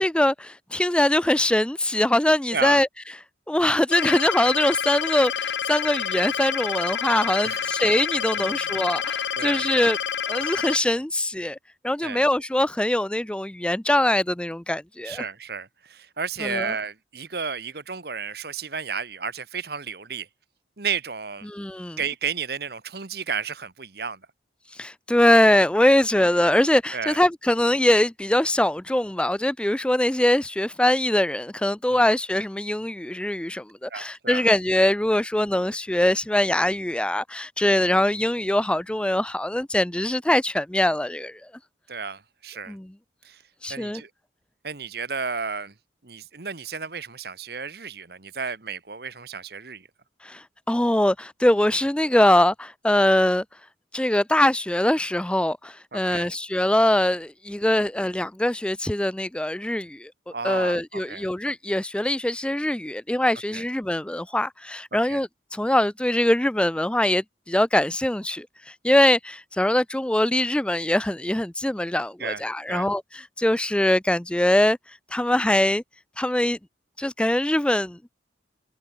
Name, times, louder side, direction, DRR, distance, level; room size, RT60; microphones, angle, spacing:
voice 1, 0.0-2.9 3.5-10.0 10.3-11.6 11.8-15.3 16.4-16.7 21.5-22.0 24.7-41.4 42.7-42.9 43.6-44.0 50.2-53.4 53.9-60.1 60.4-75.8 76.2-76.6 77.0-78.0, left 1 dB, 5° left, 0.4 m, -22 dB
voice 2, 2.5-2.8 7.4-7.7 8.3-8.5 9.4-9.6 12.0-12.2 15.0-20.3 20.8-21.5 22.0-24.2 26.9-27.2 33.9-34.4 41.9-42.8 43.2-43.4 43.7-44.1 44.6-45.7 46.0-49.9 55.9-56.3 60.3-61.3 63.5-63.6 64.9-65.2 72.2-72.4 72.7-72.9, right 5 dB, 55° right, 1.2 m, -32 dB
sound 1, 3.9-10.8, left 8 dB, 75° left, 0.8 m, -28 dB
head